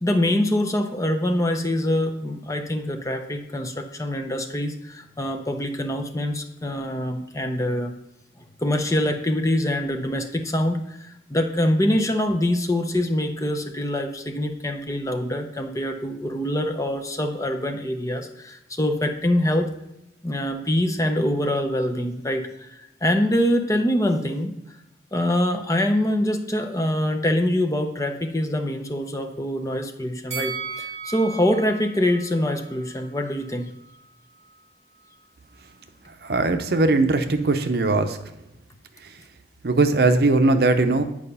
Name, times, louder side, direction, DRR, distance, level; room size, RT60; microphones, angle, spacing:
voice 1, 0.0-7.9 8.6-19.7 20.2-24.8 25.1-33.7, left 1 dB, 20° left, 5 dB, 0.6 m, -24 dB
Bell, 30.3-33.5 33.8-34.0, right 6 dB, 40° right, 1.5 m, -36 dB
voice 2, 36.2-38.2 39.6-41.0, right 2 dB, 60° right, 8 dB, 0.7 m, -19 dB
8.9 x 4.9 x 5.5 m, 0.84 s
head